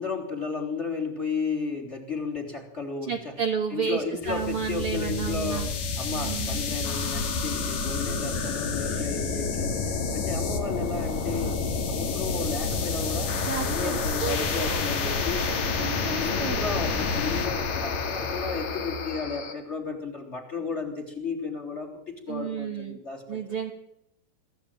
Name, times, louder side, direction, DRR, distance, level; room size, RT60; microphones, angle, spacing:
voice 1, 0.0-3.3 3.7-5.7 6.0-11.6 11.9-13.3 13.6-15.5 16.1-23.4, left 4 dB, 15° left, 5 dB, 3.0 m, -33 dB
voice 2, 3.0-5.7 6.1-6.6 8.1-8.2 8.9-9.1 13.4-14.8 15.3-16.6 22.3-23.0 23.3-23.7, right 6 dB, 70° right, 3 dB, 1.3 m, -32 dB
sound 1, 4.2-19.5, left 4 dB, 50° left, 2.8 m, -29 dB
23.0 x 14.5 x 9.0 m, 0.79 s
omnidirectional pair, 5.1 m